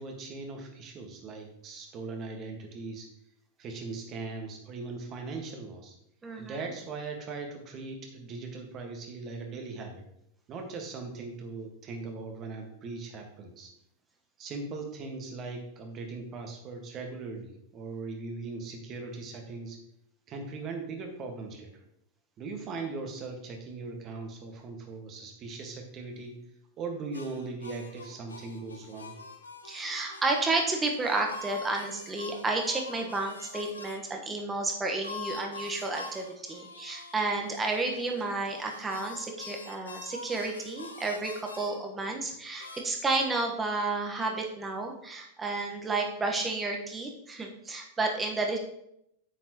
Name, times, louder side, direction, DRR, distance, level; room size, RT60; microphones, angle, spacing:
voice 1, 0.0-3.1 3.6-5.9 6.4-10.0 10.5-13.7 14.4-19.8 20.3-21.7 22.4-26.4 26.8-29.2, right 3 dB, 30° right, 3 dB, 1.7 m, -39 dB
voice 2, 6.2-6.7 29.6-48.6, right 3 dB, 15° right, 2 dB, 1.4 m, -31 dB
sound 1, 27.1-34.0 35.0-41.7 42.6-42.8, left 3 dB, 75° left, 1.0 m, -45 dB
9.3 x 7.9 x 3.1 m, 0.77 s
figure-of-eight pair, 90°, 0 cm